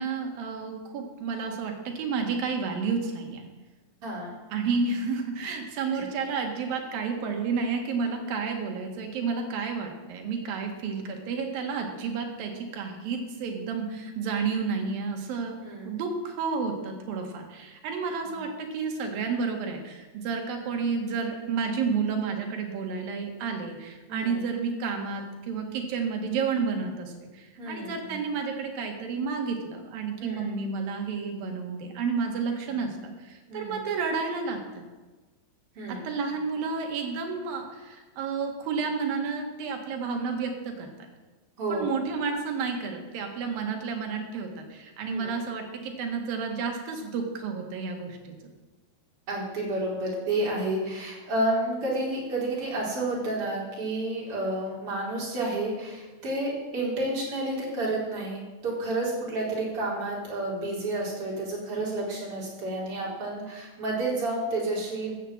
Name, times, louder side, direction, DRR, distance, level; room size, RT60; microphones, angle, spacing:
voice 1, 0.0-3.4 4.5-34.8 35.9-40.9 41.7-48.3, right 5 dB, 65° right, 3 dB, 3.3 m, -31 dB
voice 2, 4.0-4.4 5.9-6.1 15.6-15.9 18.2-18.4 24.1-24.4 27.6-28.2 30.2-30.5 33.5-33.8 35.8-36.0 41.6-41.9 45.0-45.4 49.3-65.2, right 2 dB, 35° right, -3 dB, 4.3 m, -30 dB
14.5 x 7.9 x 7.6 m, 1.2 s
omnidirectional pair, 4.8 m